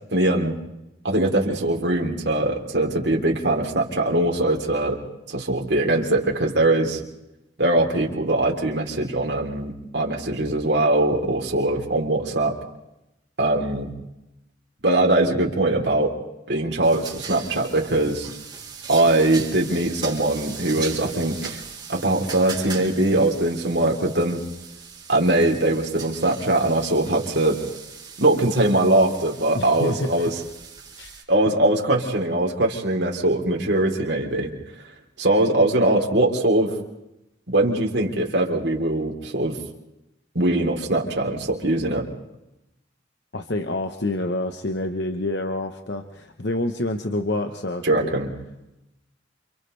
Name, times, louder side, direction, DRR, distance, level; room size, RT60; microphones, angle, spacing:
voice 1, 0.1-0.6 1.0-5.0 5.3-7.0 7.6-12.6 13.4-13.9 14.8-16.1 16.5-18.3 18.9-21.6 21.9-24.4 25.1-27.6 28.2-30.4 31.3-34.5 35.2-36.8 37.5-39.6 40.4-42.1 47.8-48.3, right 1 dB, 65° right, 0 dB, 3.6 m, -21 dB
sound 1, 16.8-31.2, right 6 dB, 25° right, 4.2 m, -39 dB
voice 2, 29.5-30.3 31.0-31.2 43.3-48.1, left 2 dB, 65° left, 5 dB, 1.2 m, -27 dB
29.5 x 27.0 x 3.4 m, 0.90 s
head